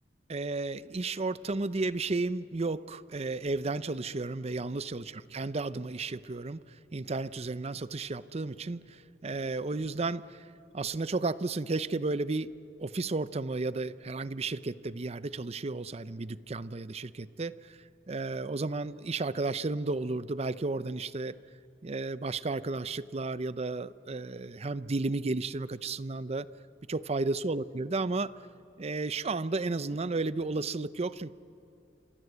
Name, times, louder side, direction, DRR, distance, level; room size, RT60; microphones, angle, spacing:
voice 1, 0.3-6.6 6.9-10.4 10.7-12.5 12.8-17.8 18.1-21.4 21.8-26.5 26.9-28.3 28.8-31.3, right 3 dB, 35° right, 16 dB, 0.6 m, -33 dB
27.0 x 26.5 x 8.1 m, 2.7 s
head